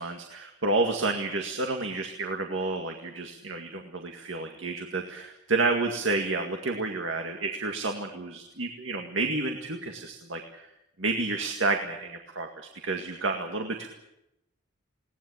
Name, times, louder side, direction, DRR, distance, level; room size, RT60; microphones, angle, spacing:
voice 1, 0.0-10.7 11.0-13.9, right 3 dB, 85° right, 3 dB, 2.0 m, -30 dB
21.0 x 18.5 x 8.7 m, 0.90 s
head